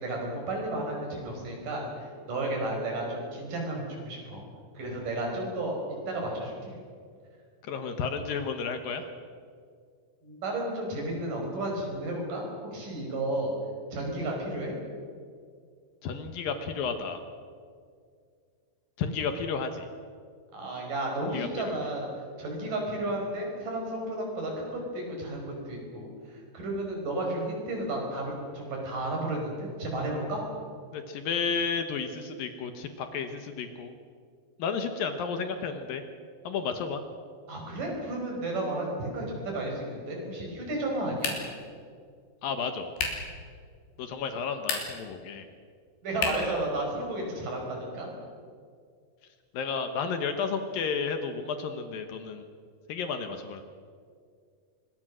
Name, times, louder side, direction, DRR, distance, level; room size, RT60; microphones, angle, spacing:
voice 1, 0.0-4.4 4.7-5.8 6.1-6.8 10.2-13.5 13.9-14.7 20.5-22.1 22.4-30.4 37.5-41.4 46.0-48.1, right 1 dB, 55° right, 0 dB, 6.8 m, -33 dB
voice 2, 7.6-9.1 16.0-17.2 19.0-19.9 21.3-21.8 30.9-33.9 34.6-36.0 36.4-37.0 42.4-42.9 44.0-45.5 49.5-52.5 52.9-53.6, left 5 dB, 70° left, 7 dB, 2.8 m, -32 dB
sound 1, 41.2-41.7 43.0-43.3 44.5-45.1 46.2-46.6, left 4 dB, 90° left, 5.2 m, -32 dB
25.0 x 21.5 x 6.4 m, 2.1 s
omnidirectional pair, 4.6 m